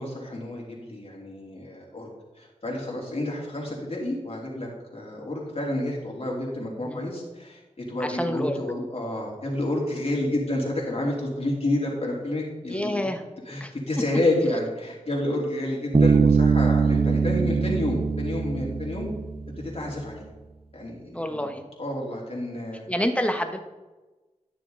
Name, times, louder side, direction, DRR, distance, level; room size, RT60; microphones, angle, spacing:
voice 1, 0.0-2.1 2.4-7.6 7.9-13.0 13.5-19.1 19.6-20.3 20.7-21.0 21.3-21.4 21.8-22.9, left 1 dB, 50° left, -3 dB, 3.4 m, -29 dB
voice 2, 8.0-8.6 12.7-13.2 13.6-13.7 21.1-21.6 22.9-23.6, equal, 10° left, 6 dB, 1.3 m, -28 dB
Bass guitar, 15.9-19.6, right 5 dB, 50° right, 0.7 m, -22 dB
12.0 x 6.8 x 3.9 m, 1.2 s
cardioid pair, 45°, 13 cm